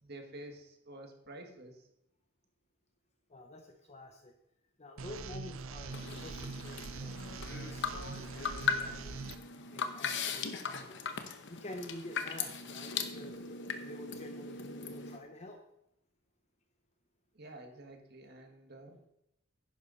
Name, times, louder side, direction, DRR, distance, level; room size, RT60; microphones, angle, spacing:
voice 1, 0.0-1.8 17.3-19.0, right 1 dB, 55° right, 4 dB, 1.8 m, -49 dB
voice 2, 3.3-4.3 4.8-7.2 7.5-9.2 9.7-11.1 11.5-15.6, left 1 dB, 35° left, 4 dB, 0.9 m, -49 dB
sound 1, 5.0-9.4, right 4 dB, 90° right, 0.6 m, -43 dB
sound 2, 5.9-15.2, left 5 dB, 60° left, 1.0 m, -39 dB
10.5 x 10.0 x 4.1 m, 0.80 s
head